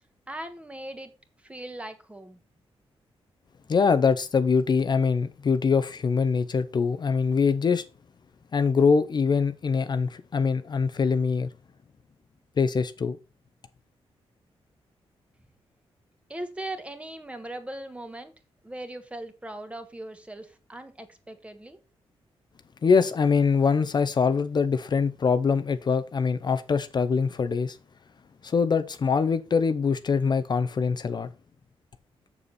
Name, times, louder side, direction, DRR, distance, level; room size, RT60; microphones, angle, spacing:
voice 1, 0.3-1.1 1.4-2.4 16.3-18.3 18.6-21.8, right 1 dB, 10° right, 1.4 m, -39 dB
voice 2, 3.7-7.8 8.5-11.5 12.6-13.2 22.8-27.8 28.4-31.3, left 5 dB, 45° left, 0.7 m, -23 dB
7.1 x 6.9 x 4.2 m
cardioid pair, 105°, 10 cm